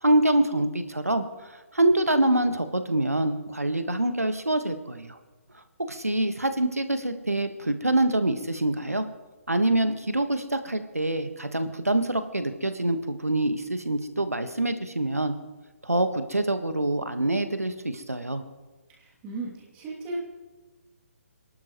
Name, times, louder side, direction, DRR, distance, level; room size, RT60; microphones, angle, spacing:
voice 1, 0.0-1.2 1.7-5.2 5.9-9.1 9.5-15.3 15.8-18.4, right 1 dB, 85° right, 9 dB, 1.5 m, -25 dB
voice 2, 18.9-20.2, right 2 dB, 20° right, -3 dB, 2.6 m, -36 dB
27.0 x 12.0 x 3.1 m, 1.2 s
figure-of-eight pair, 140°, 8 cm